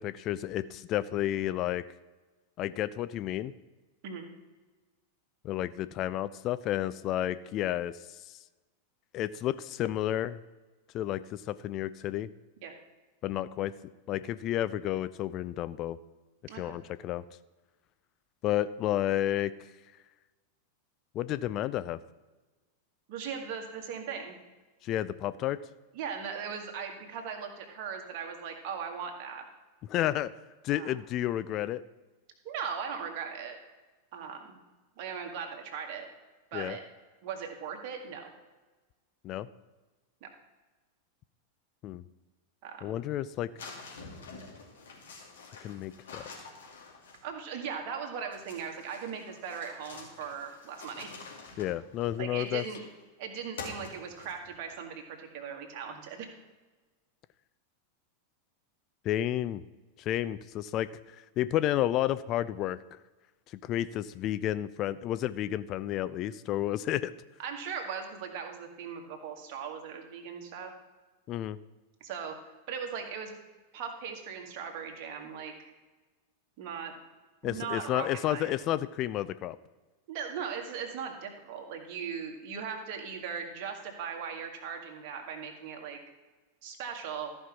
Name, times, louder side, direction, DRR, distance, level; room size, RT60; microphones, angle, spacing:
voice 1, 0.0-1.8 2.6-3.5 5.4-8.4 9.1-10.4 10.9-12.3 13.2-13.7 14.1-16.0 16.6-17.2 18.4-19.5 21.1-22.0 24.8-25.6 29.9-30.3 30.6-31.8 36.5-36.8 39.2-39.5 41.8-42.0 42.8-43.7 45.6-46.2 51.6-52.6 59.0-59.6 60.0-60.9 61.2-62.8 63.6-67.1 71.3-71.6 77.4-79.6, left 13 dB, 35° left, 15 dB, 0.3 m, -31 dB
voice 2, 23.1-24.4 25.9-29.4 30.7-31.0 32.4-33.6 34.1-34.6 35.0-36.1 36.5-36.8 37.2-38.3 40.2-40.3 42.6-42.9 47.2-51.1 52.2-52.8 53.2-56.4 67.4-70.7 72.0-73.3 73.7-75.7 76.6-76.9 77.4-78.5 80.1-86.0 86.6-87.4, right 6 dB, 45° right, 2 dB, 1.9 m, -39 dB
sound 1, 43.6-47.5 48.3-53.0 53.6-54.6, left 4 dB, 65° left, 2.6 m, -47 dB
13.5 x 5.5 x 6.0 m, 1.2 s
figure-of-eight pair, 90°, 0 cm